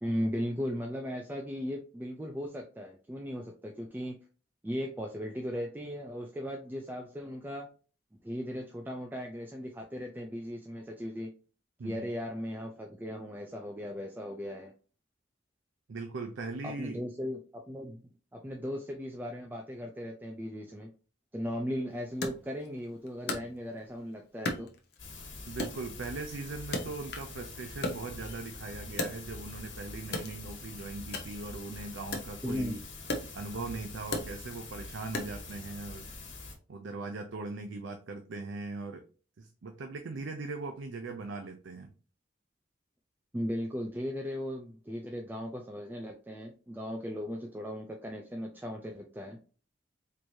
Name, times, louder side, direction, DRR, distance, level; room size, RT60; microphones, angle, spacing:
voice 1, 0.0-4.2 4.6-7.7 8.2-11.3 11.8-14.7 16.6-18.0 18.3-20.9 21.3-24.7 32.4-32.8 43.3-49.4, equal, 10° right, 2 dB, 0.3 m, -37 dB
voice 2, 15.9-17.0 25.5-32.8 33.3-36.3 36.7-39.0 39.4-41.9, right 3 dB, 75° right, 6 dB, 0.5 m, -40 dB
Wood, 22.2-24.0 24.4-25.2 25.6-27.4 27.7-29.6 30.0-35.6, left 2 dB, 55° left, 0.7 m, -38 dB
sound 1, 25.0-36.5, left 3 dB, 80° left, 1.6 m, -45 dB
4.4 x 3.1 x 2.7 m, 0.37 s
head